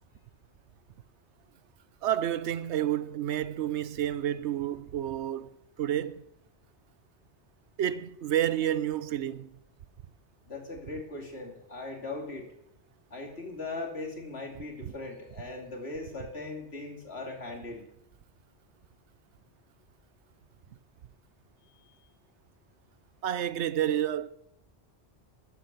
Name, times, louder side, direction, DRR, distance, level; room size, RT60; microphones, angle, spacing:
voice 1, 2.0-5.5 5.8-6.3 7.8-9.5 23.2-24.3, right 11 dB, 85° right, 1.0 m, -29 dB
voice 2, 10.5-12.5 13.1-17.8, left 3 dB, 65° left, 3.0 m, -39 dB
13.5 x 10.0 x 6.5 m
omnidirectional pair, 1.1 m